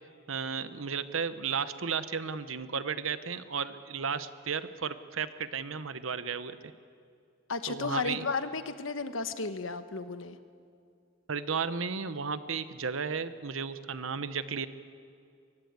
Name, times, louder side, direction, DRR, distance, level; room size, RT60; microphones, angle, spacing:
voice 1, 0.3-6.6 7.7-8.3 11.3-14.7, right 6 dB, 80° right, 12 dB, 1.0 m, -34 dB
voice 2, 7.5-10.4, left 4 dB, 75° left, 10 dB, 1.2 m, -33 dB
23.0 x 19.0 x 8.2 m, 2.4 s
head